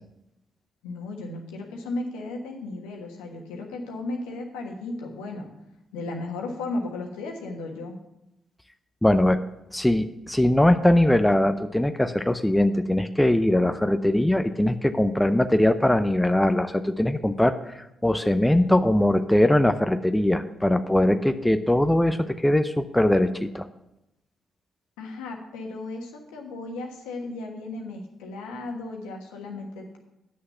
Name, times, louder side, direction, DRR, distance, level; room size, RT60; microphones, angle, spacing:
voice 1, 0.8-5.5 5.9-7.9 25.0-30.0, left 2 dB, 80° left, 2 dB, 1.4 m, -35 dB
voice 2, 9.0-9.4 9.7-23.6, left 1 dB, 10° left, 10 dB, 0.6 m, -21 dB
9.5 x 6.5 x 5.6 m, 0.89 s
hypercardioid pair, 40°, 0 cm